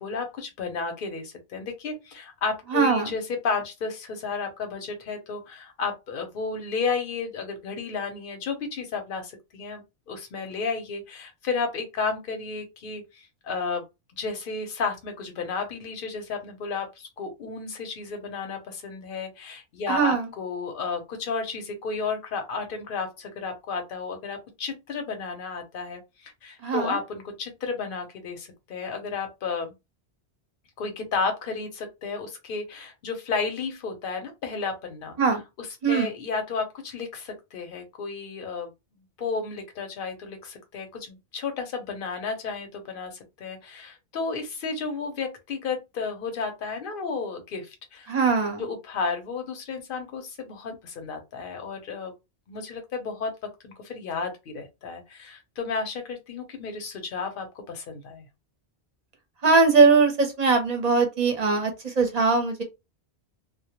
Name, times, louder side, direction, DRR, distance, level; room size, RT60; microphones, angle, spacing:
voice 1, 0.0-13.8 14.2-29.7 30.8-35.2 35.6-38.7 39.2-48.1 48.6-52.1 52.5-58.3, left 4 dB, 60° left, 0.8 m, -32 dB
voice 2, 2.7-3.1 19.9-20.3 26.6-27.0 35.2-35.4 35.8-36.1 48.1-48.6 59.4-62.6, right 4 dB, 45° right, 0.7 m, -21 dB
2.2 x 2.1 x 2.8 m
omnidirectional pair, 1.1 m